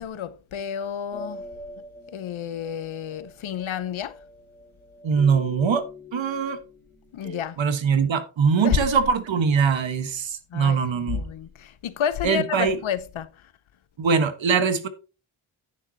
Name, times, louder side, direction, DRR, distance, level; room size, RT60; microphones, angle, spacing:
voice 1, 0.0-1.4 2.1-4.2 7.1-7.6 8.6-8.8 10.5-13.5, left 8 dB, 80° left, 1.0 m, -30 dB
sound 1, 1.1-7.4, left 2 dB, 5° left, 5.7 m, -43 dB
voice 2, 5.0-5.8 6.1-6.6 7.6-11.2 12.2-12.8 14.0-14.9, right 6 dB, 70° right, 1.4 m, -22 dB
10.5 x 9.1 x 2.8 m
wide cardioid pair, 150°, 47 cm